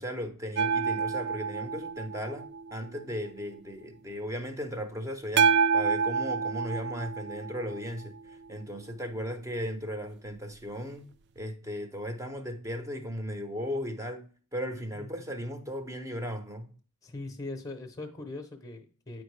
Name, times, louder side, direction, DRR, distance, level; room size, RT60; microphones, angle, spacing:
voice 1, 0.0-11.1 11.4-14.2 14.5-16.7, equal, 15° right, 0.8 m, -36 dB
sound 1, 0.6-3.4 5.4-8.6 11.4-11.5, right 6 dB, 50° right, 0.3 m, -29 dB
voice 2, 14.9-15.3 17.0-19.2, left 2 dB, 15° left, 0.8 m, -41 dB
9.0 x 4.5 x 3.2 m
head